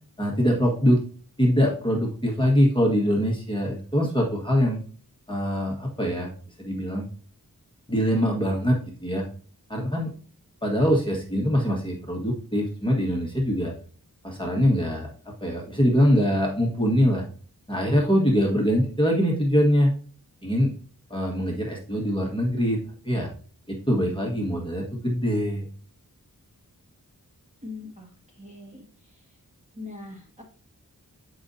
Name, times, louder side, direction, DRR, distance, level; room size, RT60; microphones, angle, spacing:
voice 1, 0.2-1.0 1.4-4.8 5.3-6.3 6.6-7.1 7.9-9.2 9.7-10.1 10.6-13.7 14.2-15.1 15.4-17.2 17.7-19.9 20.4-20.7 21.1-22.8 23.0-23.3 23.7-25.6, equal, 15° left, -2 dB, 1.5 m, -23 dB
voice 2, 27.6-29.2 29.8-30.4, left 3 dB, 20° right, -1 dB, 1.8 m, -42 dB
8.3 x 5.0 x 2.7 m, 0.42 s
wide cardioid pair, 75°, 35 cm